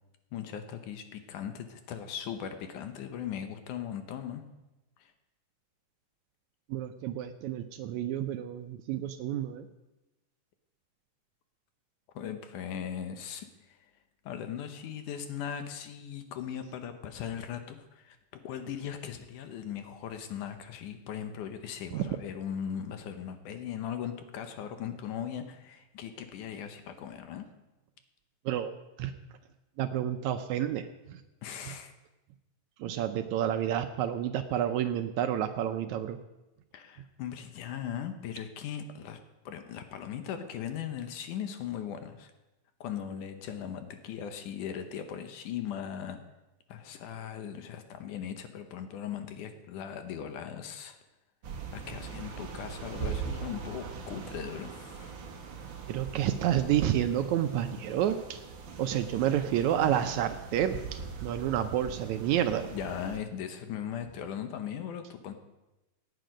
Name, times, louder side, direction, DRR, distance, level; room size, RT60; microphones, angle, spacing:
voice 1, 0.3-4.4 5.0-5.1 12.2-13.8 14.3-27.5 31.4-31.9 36.7-39.2 39.5-42.3 42.8-46.2 46.7-51.0 51.7-55.1 62.7-65.3, left 9 dB, 75° left, 7 dB, 2.4 m, -39 dB
voice 2, 6.7-9.7 21.9-22.0 28.5-28.7 29.0-29.1 29.8-31.2 31.7-31.8 32.8-36.2 55.9-58.4 58.8-62.7, right 10 dB, 75° right, 8 dB, 1.8 m, -30 dB
sound 1, 51.4-63.2, right 6 dB, 50° right, 1.5 m, -41 dB
17.0 x 9.2 x 5.1 m, 1.0 s
omnidirectional pair, 3.7 m